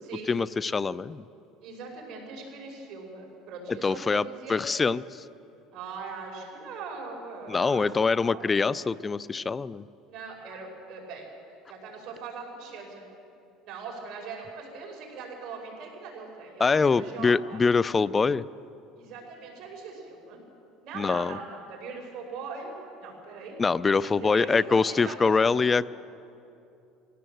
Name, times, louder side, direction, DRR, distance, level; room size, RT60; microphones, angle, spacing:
voice 1, 0.3-1.2 3.7-5.2 7.5-9.8 16.6-18.4 20.9-21.4 23.6-25.9, left 4 dB, 20° left, 18 dB, 0.4 m, -24 dB
voice 2, 1.6-4.6 5.7-8.5 10.1-11.3 11.7-13.1 13.6-17.6 18.9-20.4 20.8-22.7 23.0-23.6 24.0-25.5, right 4 dB, 55° right, 0 dB, 5.4 m, -41 dB
22.0 x 17.0 x 7.8 m, 2.7 s
cardioid pair, 140°, 0 cm